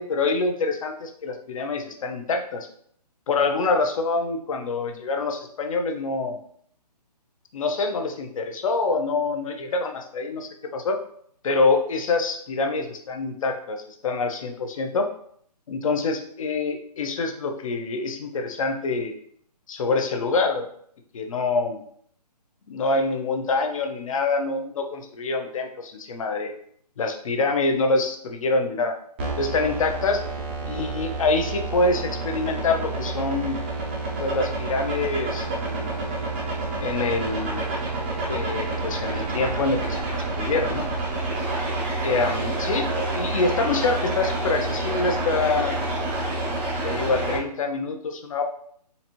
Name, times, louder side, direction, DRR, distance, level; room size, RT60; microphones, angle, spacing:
voice 1, 0.0-2.7 3.3-6.4 7.5-11.0 11.4-15.1 15.7-19.2 19.7-20.7 21.1-21.8 22.7-26.5 27.0-28.9 29.4-30.2 30.6-33.6 34.2-36.0 36.8-37.6 38.3-40.8 42.0-45.8 46.8-48.4, left 3 dB, 55° left, 5 dB, 0.6 m, -26 dB
sound 1, 29.2-47.4, right 2 dB, 15° right, 0.4 m, -28 dB
4.0 x 2.6 x 2.8 m, 0.63 s
hypercardioid pair, 155°, 21 cm